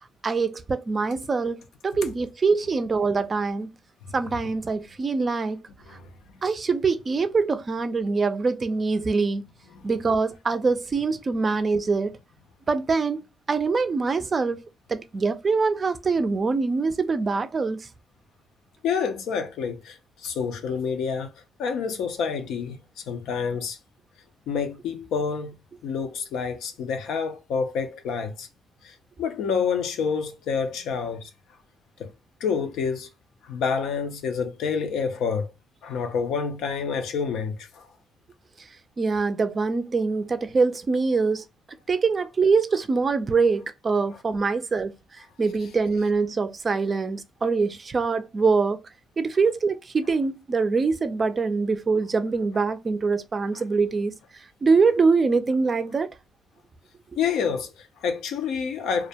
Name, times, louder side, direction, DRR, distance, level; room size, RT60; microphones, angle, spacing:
voice 1, 0.2-3.7 4.1-5.6 6.4-9.4 9.8-12.2 12.7-14.6 14.9-17.9 39.0-41.4 41.9-44.9 45.4-48.8 49.2-54.2 54.6-56.1, right 4 dB, 35° right, 0.4 m, -24 dB
voice 2, 18.8-22.8 23.1-23.8 24.5-25.6 25.8-28.5 28.8-31.3 32.0-32.1 32.4-33.1 33.4-35.5 35.8-37.9 53.5-53.6 57.2-59.1, left 6 dB, 85° left, 0.5 m, -28 dB
2.4 x 2.1 x 2.7 m
cardioid pair, 90°, 0 cm